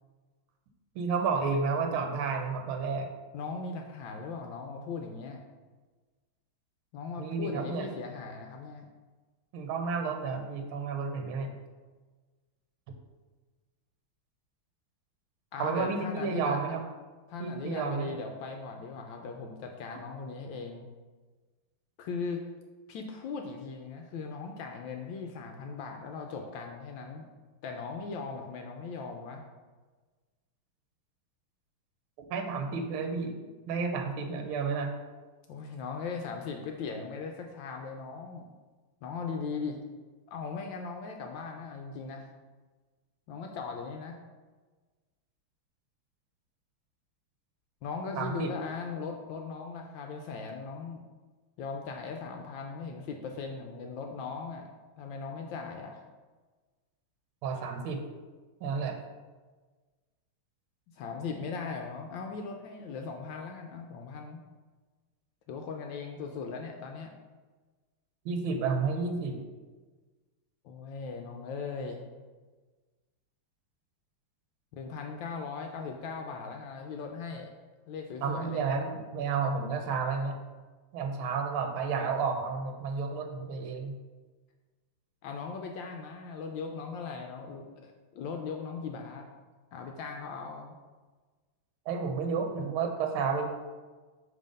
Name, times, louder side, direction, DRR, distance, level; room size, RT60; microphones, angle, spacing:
voice 1, 0.9-3.1 7.2-7.9 9.5-11.5 15.6-16.8 17.4-18.1 32.3-33.4 33.7-34.9 48.2-48.5 57.4-58.0 58.6-59.0 68.2-69.4 78.2-80.4 80.9-83.9 91.9-93.5, right 5 dB, 80° right, 4 dB, 1.5 m, -31 dB
voice 2, 3.3-5.4 6.9-8.9 15.5-16.6 17.3-20.9 22.0-22.5 22.9-27.3 27.6-29.4 35.5-38.5 39.0-39.8 40.3-42.3 43.3-44.2 47.8-51.0 51.6-54.7 55.0-56.0 60.9-64.4 65.5-67.1 70.6-72.0 74.7-77.5 77.9-78.6 85.2-89.2 89.7-90.8, left 5 dB, 75° left, 3 dB, 1.2 m, -38 dB
5.5 x 3.5 x 5.1 m, 1.3 s
omnidirectional pair, 2.3 m